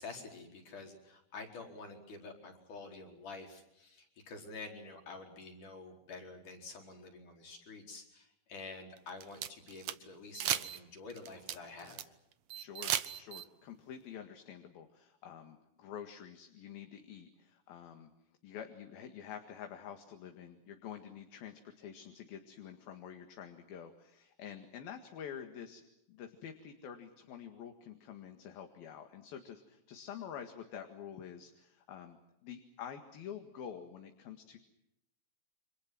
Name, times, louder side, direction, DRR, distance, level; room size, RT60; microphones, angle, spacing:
voice 1, 0.0-12.0, left 3 dB, 50° left, 2 dB, 6.0 m, -48 dB
sound 1, 9.0-10.0 10.3-10.8 11.1-12.0 12.5-13.4, right 11 dB, 75° right, 1.5 m, -35 dB
voice 2, 12.5-18.1 18.4-25.8 26.1-32.2 32.4-34.6, left 8 dB, 65° left, 5 dB, 3.6 m, -48 dB
29.5 x 26.5 x 6.1 m, 0.84 s
omnidirectional pair, 4.7 m